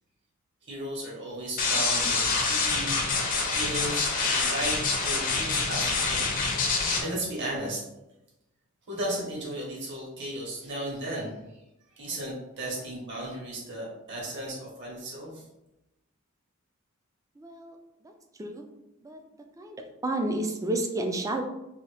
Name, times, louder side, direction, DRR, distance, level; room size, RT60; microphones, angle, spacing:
voice 1, 0.7-3.0 3.5-6.3 7.0-7.8 8.9-11.4 11.9-15.4, right 1 dB, 55° right, -4 dB, 1.3 m, -35 dB
sound 1, 1.6-7.0, left 4 dB, 40° left, 0.6 m, -26 dB
voice 2, 17.4-17.8 18.0-18.1 18.4-18.7 19.0-19.2 19.6-21.4, right 1 dB, 15° right, 4 dB, 0.3 m, -31 dB
2.8 x 2.6 x 3.3 m, 0.92 s
head